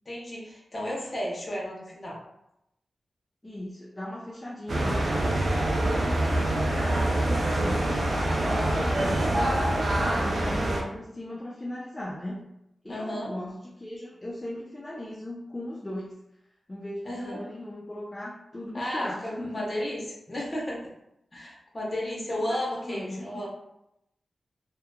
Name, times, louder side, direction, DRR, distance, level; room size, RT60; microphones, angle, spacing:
voice 1, 0.1-2.2 12.9-13.3 17.0-17.4 18.7-20.0 20.3-20.8 21.3-23.5, left 1 dB, 40° left, -4 dB, 0.9 m, -33 dB
voice 2, 3.4-5.0 5.8-8.0 8.3-12.5 12.8-16.2 16.7-19.7 22.5-23.5, left 1 dB, 20° left, -4 dB, 0.4 m, -38 dB
sound 1, 4.7-10.8, right 1 dB, 65° right, 0.5 m, -25 dB
2.8 x 2.1 x 2.2 m, 0.84 s
cardioid pair, 60°, 0 cm